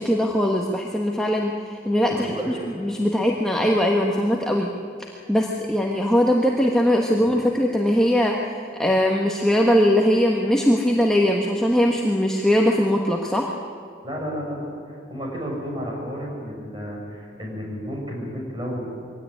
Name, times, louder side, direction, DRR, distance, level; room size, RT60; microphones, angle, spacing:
voice 1, 0.0-4.7 5.1-13.6, equal, 5° left, -1 dB, 1.3 m, -21 dB
voice 2, 2.1-2.7 7.2-7.3 14.0-18.9, equal, 25° right, -2 dB, 6.6 m, -32 dB
23.0 x 17.5 x 9.8 m, 2.3 s
head